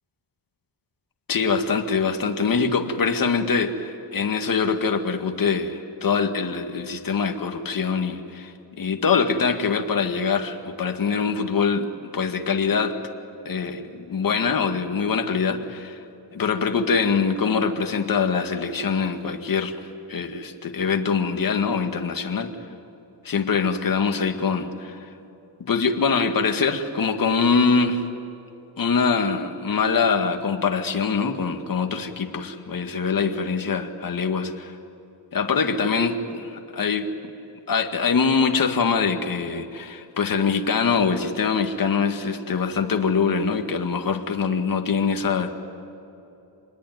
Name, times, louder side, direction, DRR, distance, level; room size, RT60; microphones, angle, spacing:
voice 1, 1.3-11.9 12.1-13.0 13.5-16.0 16.3-19.7 20.1-22.5 23.2-25.0 25.6-28.0 28.8-34.7 35.3-36.1 36.7-37.1 37.7-45.7, left 5 dB, 45° left, 5 dB, 2.0 m, -23 dB
27.0 x 20.5 x 9.3 m, 2.9 s
cardioid pair, 105°, 45 cm